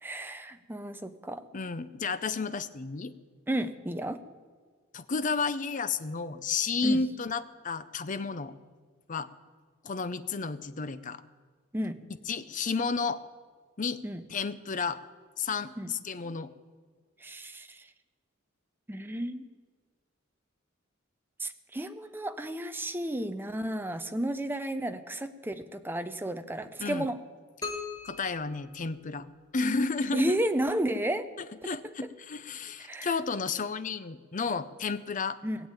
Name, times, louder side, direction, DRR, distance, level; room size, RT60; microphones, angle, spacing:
voice 1, 0.0-1.4 3.5-4.2 6.8-7.0 11.7-12.0 14.0-14.2 15.8-15.9 17.2-17.8 18.9-19.4 21.4-27.2 30.1-31.3 31.6-31.9 32.8-33.1 35.4-35.6, right 1 dB, 10° right, 8 dB, 0.6 m, -32 dB
voice 2, 1.5-3.1 4.9-8.5 9.1-9.3 9.8-11.2 12.3-13.2 13.8-14.0 14.3-15.0 15.4-16.5 26.8-27.1 28.0-29.3 29.5-30.4 31.6-35.4, left 4 dB, 40° left, 12 dB, 0.6 m, -32 dB
sound 1, 27.6-29.5, left 4 dB, 20° left, 1.5 m, -40 dB
19.0 x 7.3 x 8.9 m, 1.5 s
head